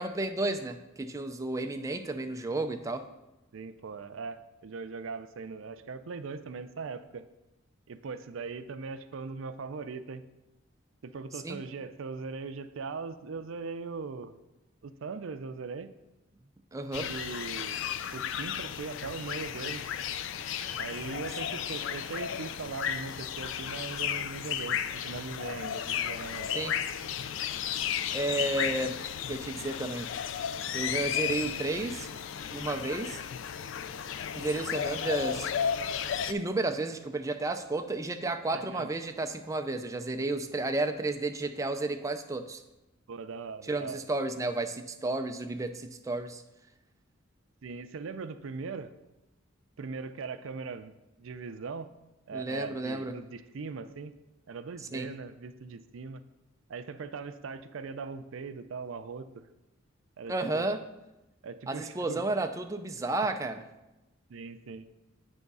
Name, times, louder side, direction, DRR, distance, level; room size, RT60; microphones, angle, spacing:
voice 1, 0.0-3.1 11.4-11.6 16.7-17.1 26.5-26.8 28.1-29.0 29.3-30.1 30.7-32.1 32.5-33.2 34.3-35.5 36.3-42.6 43.7-46.4 52.3-53.1 54.9-55.1 60.3-60.8 61.7-63.6, right 2 dB, 15° right, 6 dB, 0.4 m, -32 dB
voice 2, 3.5-7.3 7.9-10.2 11.0-14.4 14.8-15.9 17.0-17.8 18.1-19.8 20.8-26.5 38.5-38.9 43.1-44.0 47.6-48.9 49.8-50.9 51.2-51.9 52.3-54.1 54.5-56.2 56.7-59.4 60.2-60.7 61.4-62.2 64.3-64.9, right 4 dB, 75° right, 11 dB, 0.4 m, -40 dB
sound 1, 16.9-36.3, left 8 dB, 65° left, 0.3 m, -34 dB
8.4 x 3.5 x 5.4 m, 0.98 s
head